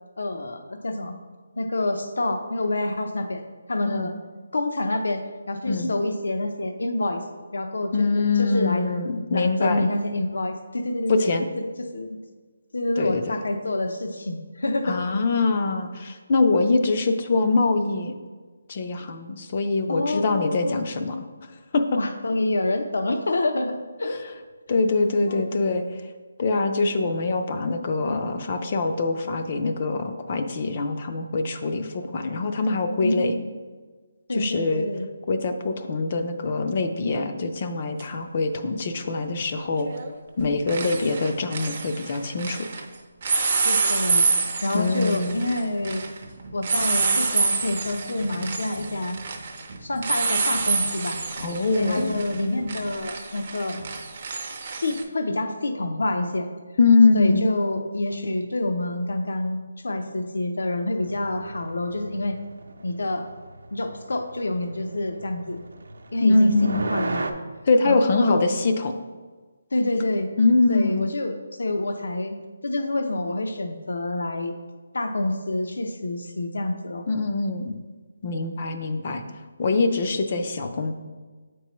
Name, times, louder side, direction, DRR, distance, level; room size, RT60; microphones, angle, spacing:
voice 1, 0.2-1.2 1.6-3.4 3.7-4.1 4.5-7.2 7.5-8.9 9.3-11.7 11.9-12.1 12.7-15.0 19.9-20.8 21.9-24.2 25.3-25.4 33.0-33.6 34.3-35.1 43.5-44.3 44.6-46.0 46.5-49.2 49.8-51.2 51.7-53.8 54.8-56.5 57.1-62.4 62.8-63.3 63.7-65.6 66.1-67.3 67.8-68.5 69.7-70.3 70.7-72.4 72.6-74.5 74.9-77.1, left 2 dB, 80° left, 5 dB, 0.6 m, -27 dB
voice 2, 3.8-4.1 5.7-5.9 7.9-9.9 11.1-11.4 13.0-13.3 14.9-18.1 18.7-21.2 21.7-21.8 24.7-25.8 26.4-33.4 34.3-34.9 35.3-39.9 40.4-42.7 44.7-45.4 51.4-52.1 56.8-57.4 66.2-66.8 67.7-68.9 70.4-71.1 77.1-77.8 78.2-79.2 79.6-80.9, left 3 dB, 30° left, 7 dB, 0.4 m, -23 dB
sound 1, 38.0-38.1 39.8-40.1 40.4-42.8 43.2-55.0, right 4 dB, 35° right, 0.6 m, -27 dB
sound 2, 61.0-67.3, right 2 dB, 80° right, 0.6 m, -36 dB
8.0 x 4.6 x 3.0 m, 1.4 s
hypercardioid pair, 175°, 0 cm